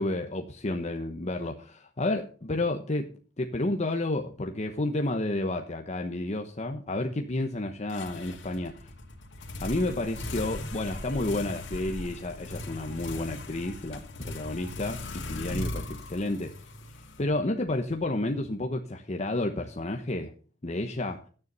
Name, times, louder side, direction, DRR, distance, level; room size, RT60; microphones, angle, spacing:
voice 1, 0.0-3.1 3.4-8.9 9.6-16.7 17.2-20.3 20.6-21.2, left 2 dB, 35° left, 4 dB, 1.0 m, -31 dB
sound 1, 7.9-17.7, left 1 dB, 70° left, 2.7 m, -39 dB
12.5 x 9.6 x 5.4 m, 0.41 s
head